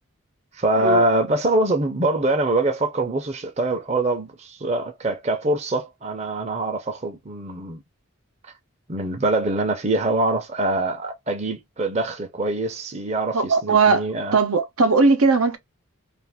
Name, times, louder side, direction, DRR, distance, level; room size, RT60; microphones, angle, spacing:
voice 1, 0.5-7.8 8.9-14.4, right 2 dB, 30° right, 0.5 m, -24 dB
voice 2, 13.3-15.6, right 4 dB, 85° right, 0.7 m, -19 dB
2.5 x 2.4 x 3.4 m
head